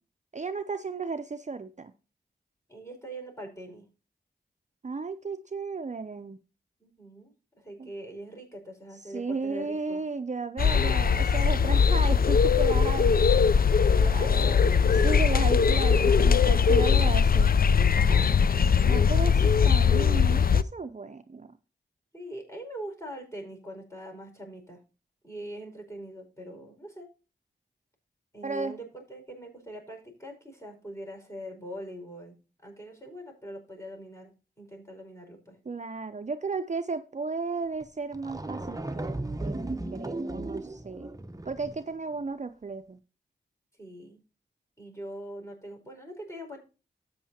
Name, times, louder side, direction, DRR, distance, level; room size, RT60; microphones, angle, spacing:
voice 1, 0.3-1.9 4.8-6.4 7.8-7.9 9.1-13.1 14.1-14.5 15.0-17.5 18.1-18.3 18.8-21.5 28.4-28.8 35.7-41.1 41.5-43.0, right 4 dB, 40° right, 10 dB, 0.6 m, -34 dB
voice 2, 2.7-3.9 6.8-10.0 13.9-14.7 17.9-18.7 22.1-24.8 25.2-27.1 28.3-32.3 32.6-35.6 43.8-44.2 44.8-46.6, right 1 dB, 15° left, 1 dB, 5.3 m, -42 dB
sound 1, 10.6-20.6, left 6 dB, 50° left, 0.5 m, -21 dB
sound 2, 37.8-37.9 38.1-41.9, right 2 dB, 20° right, 1.0 m, -36 dB
13.0 x 8.5 x 2.8 m, 0.32 s
cardioid pair, 40°, 19 cm